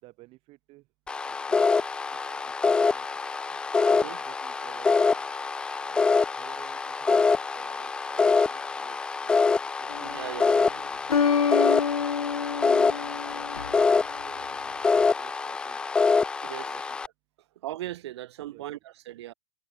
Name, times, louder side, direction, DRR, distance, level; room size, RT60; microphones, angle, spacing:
voice 1, 0.0-0.9 1.2-1.8 2.3-3.1 4.0-5.2 5.8-9.9 10.7-11.9 12.1-15.8 16.6-17.0 18.5-18.7, right 21 dB, 30° right, 6.5 m, -53 dB
sound 1, 1.1-17.1, left 4 dB, 5° left, 0.4 m, -25 dB
voice 2, 3.9-4.2 10.0-10.8 16.4-16.9 17.6-19.3, right 14 dB, 45° right, 2.8 m, -38 dB
sound 2, 9.9-10.4 11.1-14.0, left 6 dB, 65° left, 1.3 m, -27 dB
figure-of-eight pair, 115°, 20 cm